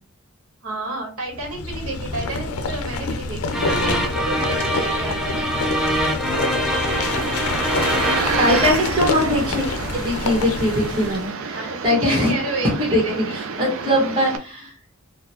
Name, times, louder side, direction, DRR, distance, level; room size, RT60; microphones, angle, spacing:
voice 1, 0.6-5.5 11.5-13.4, right 2 dB, 85° right, 0 dB, 1.2 m, -31 dB
sound 1, 1.3-11.3, left 3 dB, 85° left, 0.5 m, -27 dB
sound 2, 3.5-8.7, equal, ahead, 0.5 m, -24 dB
sound 3, 6.7-14.4, right 5 dB, 70° right, 0.4 m, -29 dB
voice 2, 8.4-9.7 9.9-12.3 12.9-13.0 13.3-14.7, left 1 dB, 25° right, -2 dB, 1.4 m, -21 dB
3.8 x 2.3 x 2.8 m, 0.37 s
head